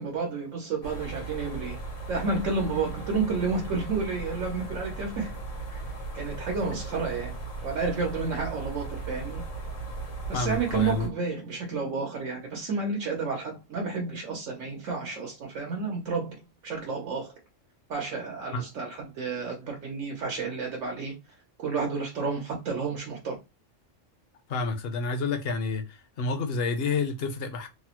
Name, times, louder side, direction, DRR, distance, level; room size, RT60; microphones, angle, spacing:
voice 1, 0.0-1.8 2.1-5.4 5.7-5.8 6.1-7.4 7.6-9.4 10.3-17.3 17.9-21.1 21.6-23.4, right 4 dB, 85° right, 1.2 m, -31 dB
sound 1, 0.8-11.1, right 3 dB, 85° left, 1.4 m, -37 dB
voice 2, 10.3-11.1 18.5-18.6 24.5-27.7, left 4 dB, 60° left, 0.7 m, -29 dB
3.3 x 2.0 x 2.8 m
omnidirectional pair, 1.3 m